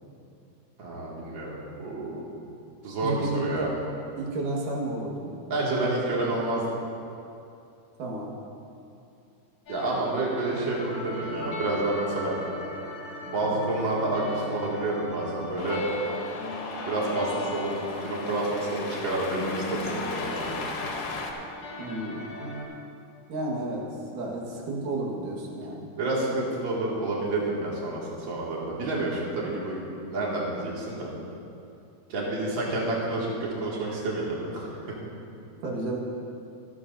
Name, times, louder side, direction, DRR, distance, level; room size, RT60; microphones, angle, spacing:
voice 1, 0.8-2.2 2.8-3.7 5.5-6.7 9.7-12.3 13.2-15.9 16.9-20.6 26.0-31.1 32.1-33.3 33.6-34.7, right 2 dB, 40° right, -5 dB, 2.6 m, -29 dB
voice 2, 3.0-3.7 4.2-5.6 8.0-8.3 21.8-22.3 23.3-23.8 24.1-25.9 35.6-36.0, right 2 dB, 85° right, -2 dB, 3.2 m, -31 dB
sound 1, 9.7-22.6, left 1 dB, 50° left, 2.5 m, -38 dB
Cheering, 15.6-21.3, left 3 dB, 65° left, 2.3 m, -36 dB
25.0 x 9.6 x 2.6 m, 2.6 s
omnidirectional pair, 3.6 m